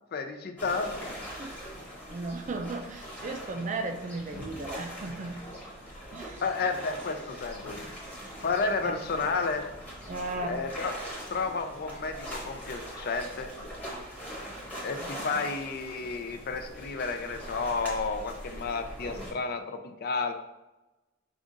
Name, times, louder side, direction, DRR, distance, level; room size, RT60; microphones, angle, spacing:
voice 1, 0.0-1.3 6.4-7.9 8.4-9.6 10.5-11.0 11.3-13.5 14.8-20.3, left 4 dB, 50° left, 7 dB, 0.4 m, -31 dB
sound 1, 0.6-19.3, equal, 10° left, 1.0 m, -42 dB
voice 2, 2.1-5.4 6.1-6.4 8.8-8.9 10.1-10.6, right 2 dB, 40° right, 5 dB, 0.4 m, -35 dB
5.0 x 2.4 x 3.8 m, 1.0 s
head